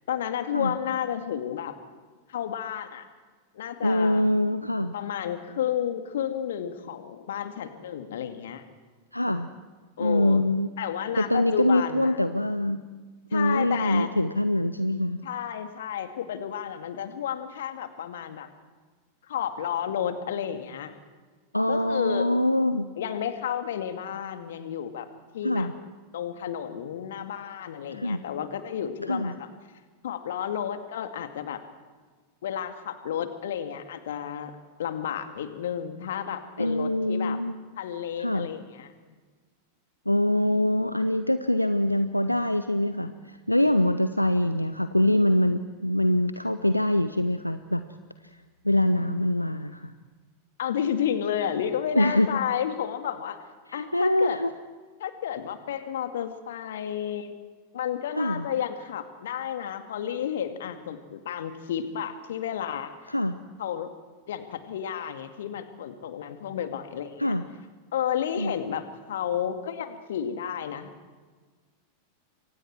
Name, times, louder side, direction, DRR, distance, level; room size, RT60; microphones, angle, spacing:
voice 1, 0.1-1.8 2.3-3.1 3.5-4.3 4.9-8.6 10.0-10.4 10.8-12.2 13.3-14.1 15.2-18.5 19.2-20.9 21.7-22.3 23.0-25.1 25.3-25.7 26.1-29.5 30.0-31.6 32.4-34.5 34.8-37.4 37.8-38.9 50.6-53.4 53.7-54.4 55.0-57.4 57.7-62.9 63.6-63.9 64.3-67.4 67.9-70.9, left 9 dB, 60° left, 8 dB, 2.2 m, -31 dB
voice 2, 3.8-4.9 9.1-9.5 10.0-10.7 11.2-12.8 13.3-15.2 21.5-22.9 25.4-25.7 27.9-28.2 29.1-29.3 36.6-37.5 38.2-38.5 40.1-47.8 48.6-49.9 51.9-52.4 53.7-54.5 58.2-58.5 63.1-63.4 67.2-67.4 68.4-68.5, left 1 dB, 85° left, 11 dB, 0.8 m, -24 dB
29.0 x 24.5 x 4.7 m, 1.4 s
figure-of-eight pair, 90°, 0 cm